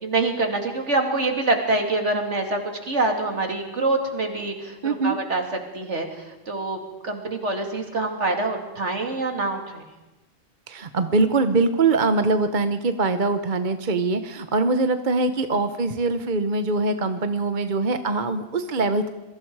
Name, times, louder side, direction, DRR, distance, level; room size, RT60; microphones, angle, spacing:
voice 1, 0.0-5.4 5.7-9.8, right 2 dB, 65° right, 3 dB, 3.0 m, -25 dB
voice 2, 4.8-5.2 10.7-19.1, right 3 dB, 40° right, 9 dB, 1.0 m, -23 dB
27.0 x 23.0 x 4.8 m, 1.1 s
omnidirectional pair, 1.3 m